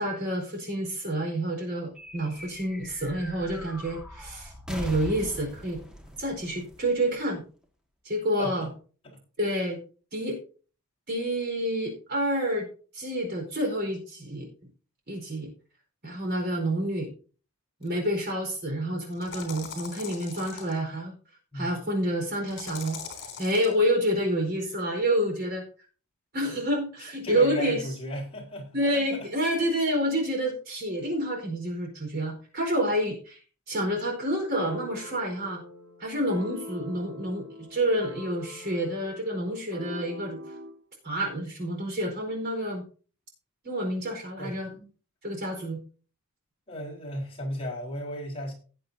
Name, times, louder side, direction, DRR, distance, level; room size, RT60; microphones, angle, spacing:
voice 1, 0.0-5.8 6.2-7.4 8.0-8.7 9.4-9.8 10.1-10.4 11.1-12.7 12.9-14.5 15.1-15.5 16.0-17.1 17.8-21.1 21.5-23.0 23.4-25.6 26.3-27.8 28.7-33.4 33.7-35.6 36.0-40.4 41.0-42.8 43.6-44.7 45.2-45.8, right 1 dB, 45° right, 2 dB, 4.5 m, -28 dB
sound 1, 2.0-7.7, equal, 5° right, 1.6 m, -42 dB
voice 2, 8.4-8.7 9.0-9.2 21.5-21.7 27.2-29.3 44.4-44.6 46.7-48.5, equal, 25° left, -4 dB, 4.2 m, -35 dB
sound 2, 17.8-17.9 19.1-20.8 22.5-23.7, left 6 dB, 55° left, 3.6 m, -41 dB
sound 3, 34.6-40.8, equal, 70° right, 4.6 m, -43 dB
18.0 x 7.6 x 2.7 m, 0.38 s
head